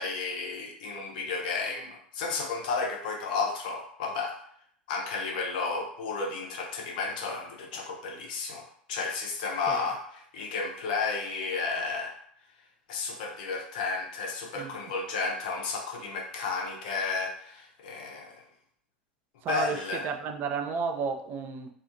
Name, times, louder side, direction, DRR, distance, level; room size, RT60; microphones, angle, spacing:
voice 1, 0.0-4.4 4.9-12.2 12.9-18.4 19.5-20.1, left 4 dB, 60° left, 0 dB, 0.7 m, -32 dB
voice 2, 19.4-21.7, right 5 dB, 35° right, 5 dB, 0.3 m, -32 dB
2.5 x 2.4 x 2.5 m, 0.63 s
figure-of-eight pair, 80°, 5 cm